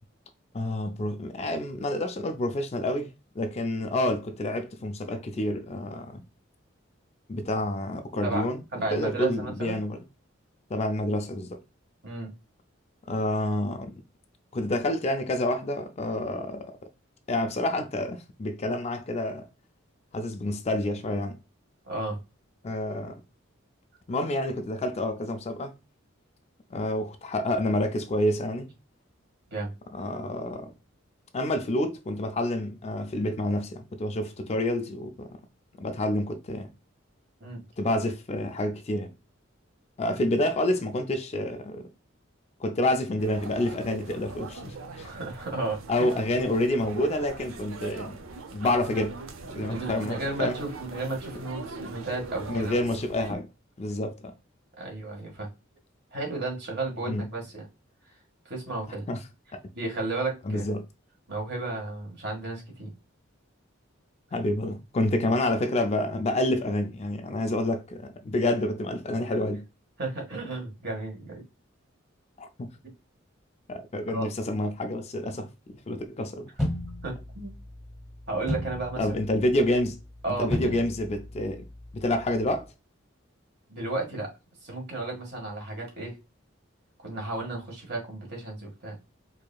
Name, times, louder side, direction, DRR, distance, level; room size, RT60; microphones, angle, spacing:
voice 1, 0.5-3.1 3.4-6.2 7.3-8.6 8.9-10.0 10.7-11.6 13.1-14.0 14.5-16.7 17.3-19.5 20.1-21.4 22.6-23.2 24.1-25.7 26.7-28.7 29.9-30.7 31.3-35.4 35.8-36.7 37.8-39.1 40.0-41.9 42.6-45.1 45.9-48.2 48.5-49.2 49.5-50.6 52.5-53.5 53.8-54.3 57.1-57.2 59.1-59.2 60.4-60.9 64.3-69.7 72.4-72.7 73.7-76.5 79.0-80.0 80.4-81.7 81.9-82.7, left 1 dB, 30° left, 0.4 m, -28 dB
voice 2, 8.7-9.8 12.0-12.3 21.8-22.2 29.5-29.7 37.4-37.6 45.0-45.8 49.5-52.8 54.8-55.5 56.1-57.6 58.4-59.0 59.7-60.7 61.3-62.9 70.0-71.4 74.1-74.3 77.0-77.5 78.3-79.1 80.2-80.7 83.7-84.3 84.6-86.2 87.0-89.0, right 2 dB, 55° right, 1.8 m, -33 dB
sound 1, 43.2-53.3, right 3 dB, 85° right, 0.6 m, -41 dB
sound 2, 76.6-82.6, equal, 5° right, 1.1 m, -36 dB
4.6 x 2.7 x 2.3 m
head